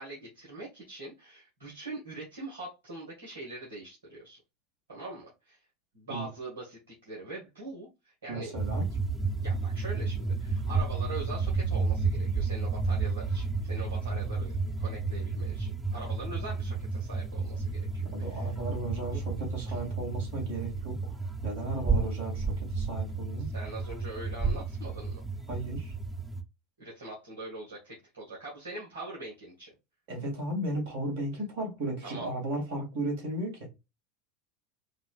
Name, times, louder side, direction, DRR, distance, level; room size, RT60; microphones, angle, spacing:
voice 1, 0.0-4.4 4.9-5.6 5.9-8.5 8.9-9.0 9.4-18.5 19.1-19.2 23.4-25.2 26.8-29.7 32.0-32.3, right 2 dB, 75° right, 1.7 m, -43 dB
voice 2, 8.3-8.9 18.1-23.5 25.5-25.9 30.1-33.7, right 1 dB, 60° right, 2.2 m, -35 dB
sound 1, 8.6-26.4, right 4 dB, 10° right, 0.8 m, -31 dB
4.8 x 2.5 x 2.3 m
figure-of-eight pair, 75°, 0 cm